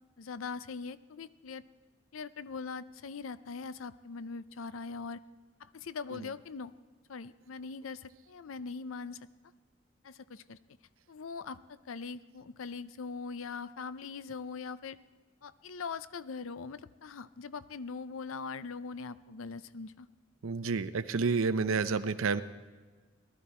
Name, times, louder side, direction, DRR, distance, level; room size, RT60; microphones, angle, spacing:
voice 1, 0.2-1.6 2.1-5.2 5.6-6.7 7.1-9.3 10.0-10.6 11.1-15.0 15.4-20.1, left 4 dB, 85° left, 15 dB, 0.5 m, -41 dB
voice 2, 20.4-22.4, right 4 dB, 85° right, 11 dB, 0.6 m, -30 dB
18.5 x 12.5 x 4.3 m, 1.4 s
head